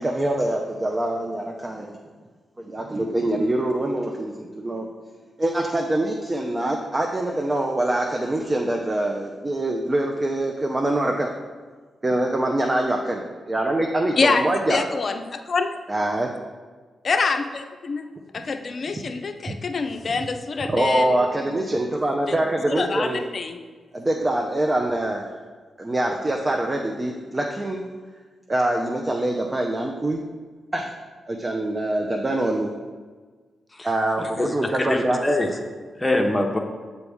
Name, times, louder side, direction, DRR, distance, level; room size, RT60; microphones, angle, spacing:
voice 1, 0.0-2.0 2.6-4.9 5.4-11.3 12.0-14.8 15.9-16.3 19.5-19.6 20.7-23.2 23.9-25.3 25.8-27.8 28.5-30.2 30.7-30.9 31.3-32.7 33.8-35.2, right 1 dB, 30° right, 1 dB, 0.6 m, -24 dB
voice 2, 14.7-15.7 17.0-18.1 18.3-21.9 22.3-22.4 22.7-23.6, left 4 dB, 55° left, 8 dB, 0.5 m, -26 dB
voice 3, 34.2-35.6 36.0-36.6, left 1 dB, 25° left, 3 dB, 0.8 m, -24 dB
6.8 x 4.1 x 3.5 m, 1.4 s
supercardioid pair, 45°, 0 cm